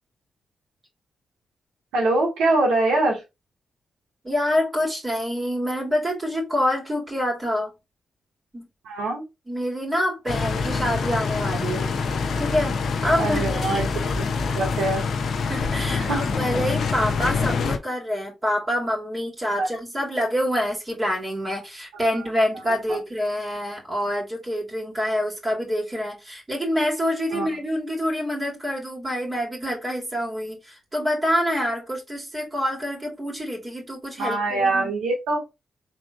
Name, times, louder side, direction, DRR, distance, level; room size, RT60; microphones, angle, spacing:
voice 1, 1.9-3.2 8.8-9.2 13.2-13.9 14.2-15.0 16.0-16.3 19.6-19.7 22.2-22.3 22.9-23.0 27.3-27.5 34.2-35.4, right 2 dB, 80° right, 1.6 m, -24 dB
voice 2, 4.2-7.7 8.5-8.7 9.5-11.9 12.4-13.8 15.4-34.9, equal, 30° right, 2.4 m, -26 dB
sound 1, 10.3-17.8, left 4 dB, 65° left, 0.7 m, -25 dB
4.3 x 3.5 x 2.4 m
hypercardioid pair, 40°, 0 cm